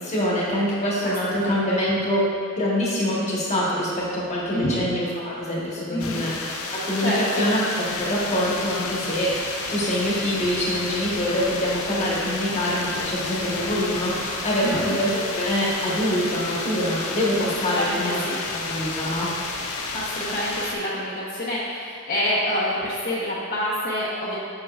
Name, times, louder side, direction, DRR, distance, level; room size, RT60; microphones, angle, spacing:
voice 1, 0.0-2.3 2.5-6.4 6.7-7.6 7.9-18.2 18.5-19.3, equal, 30° left, -5 dB, 1.3 m, -25 dB
voice 2, 1.0-1.6 4.5-4.8 5.9-6.2 7.0-7.5 14.6-14.9 17.4-18.4 19.9-24.4, left 1 dB, 50° left, -9 dB, 1.0 m, -27 dB
sound 1, 6.0-20.8, left 3 dB, 85° left, 0.7 m, -31 dB
8.1 x 6.8 x 2.4 m, 2.2 s
head